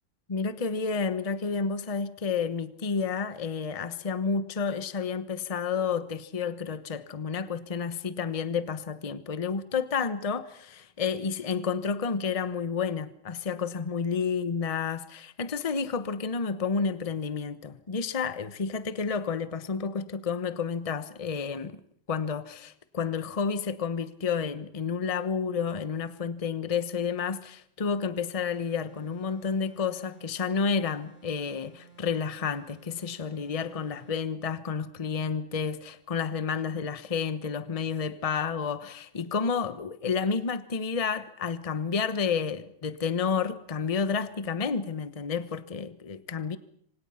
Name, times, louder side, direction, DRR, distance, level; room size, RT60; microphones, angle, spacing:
voice 1, 0.3-21.8 22.1-46.6, left 5 dB, 25° left, 0.9 m, -30 dB
sound 1, 28.5-34.3, right 7 dB, 40° right, 4.7 m, -56 dB
27.0 x 26.0 x 5.7 m
omnidirectional pair, 2.1 m